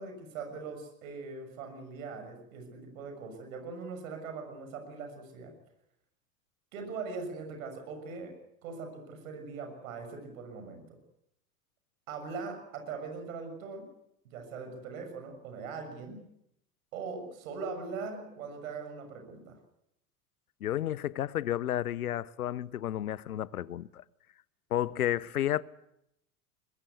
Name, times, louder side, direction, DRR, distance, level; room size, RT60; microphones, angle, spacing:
voice 1, 0.0-5.5 6.7-8.3 8.6-11.0 12.1-13.9 14.2-16.3 16.9-19.6, right 4 dB, 65° right, 6.7 m, -41 dB
voice 2, 20.6-24.0 24.7-25.6, left 12 dB, 75° left, 0.9 m, -31 dB
22.5 x 21.0 x 8.2 m
figure-of-eight pair, 80°, 44 cm